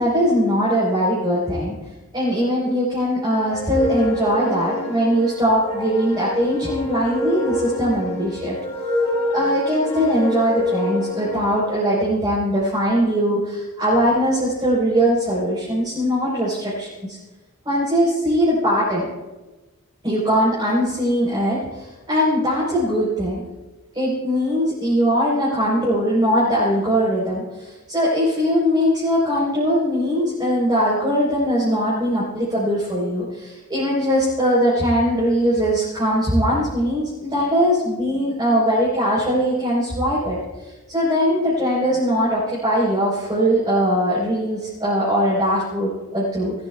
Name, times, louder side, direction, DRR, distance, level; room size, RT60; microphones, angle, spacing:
voice 1, 0.0-1.7 2.1-8.5 9.3-17.2 17.6-19.0 20.0-23.4 23.9-40.4 40.6-46.5, equal, 20° right, -9 dB, 4.0 m, -20 dB
sound 1, 3.4-11.6, left 1 dB, 25° left, 1.7 m, -27 dB
20.0 x 14.0 x 2.3 m, 1.2 s
head